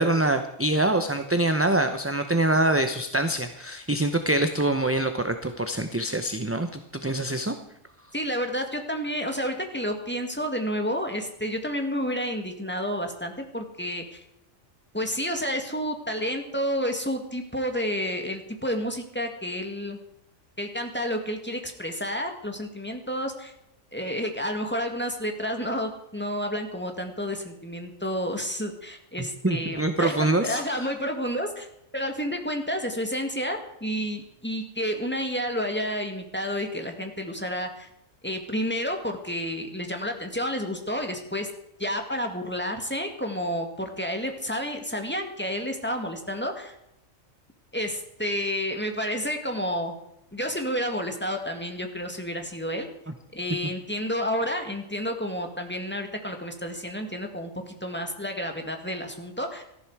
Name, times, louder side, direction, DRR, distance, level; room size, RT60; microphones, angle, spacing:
voice 1, 0.0-7.5 29.4-30.9, right 1 dB, 15° right, 7 dB, 0.7 m, -25 dB
voice 2, 8.1-14.2 14.9-20.0 20.6-23.5 23.9-31.7 31.9-37.9 38.2-41.5 41.8-46.7 47.7-49.9 50.3-52.9 53.3-59.6, equal, 10° left, 4 dB, 1.9 m, -30 dB
17.5 x 14.0 x 4.8 m, 0.81 s
omnidirectional pair, 1.4 m